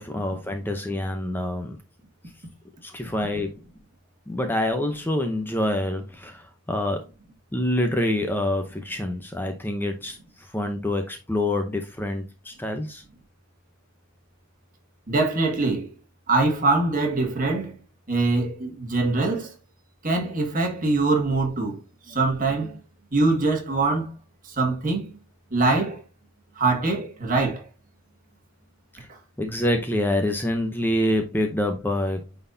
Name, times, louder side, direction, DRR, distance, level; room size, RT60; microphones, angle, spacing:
voice 1, 0.0-1.8 2.8-3.5 4.3-7.0 7.5-13.0 29.4-32.2, left 1 dB, 10° left, 0.6 m, -26 dB
voice 2, 15.1-15.9 16.3-17.8 18.1-19.5 20.0-21.8 22.1-22.8 23.1-24.1 24.4-25.2 25.5-26.0 26.6-27.6, right 3 dB, 40° right, 1.8 m, -23 dB
9.1 x 4.1 x 2.7 m
head